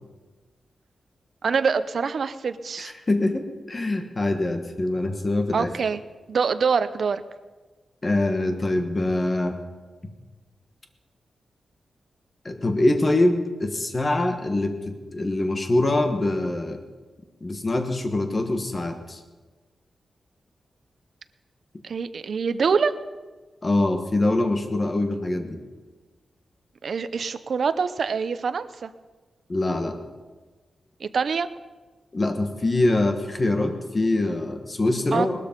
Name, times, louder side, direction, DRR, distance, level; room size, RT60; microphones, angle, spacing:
voice 1, 1.4-2.9 5.5-6.0 6.3-7.2 21.8-22.9 26.8-28.9 31.0-31.5 35.1-35.3, right 5 dB, 55° right, 12 dB, 0.6 m, -25 dB
voice 2, 2.8-5.7 8.0-9.6 12.4-16.8 17.4-19.2 23.6-25.6 29.5-30.0 32.1-35.4, left 2 dB, 25° left, 6 dB, 1.3 m, -24 dB
19.0 x 13.0 x 5.3 m, 1.3 s
wide cardioid pair, 175°, 0 cm